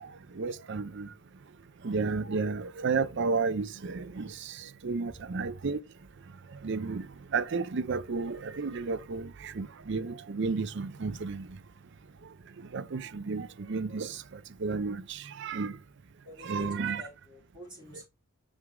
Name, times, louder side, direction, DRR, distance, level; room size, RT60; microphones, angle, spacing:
voice 1, 0.4-1.1 1.8-4.3 4.8-5.8 6.6-7.0 7.3-9.3 9.6-11.4 12.7-14.1 14.6-15.0 15.4-15.7 16.4-17.0, right 4 dB, 55° right, 0.5 m, -31 dB
voice 2, 16.2-18.1, equal, 20° right, 4.3 m, -48 dB
6.2 x 6.1 x 3.6 m
head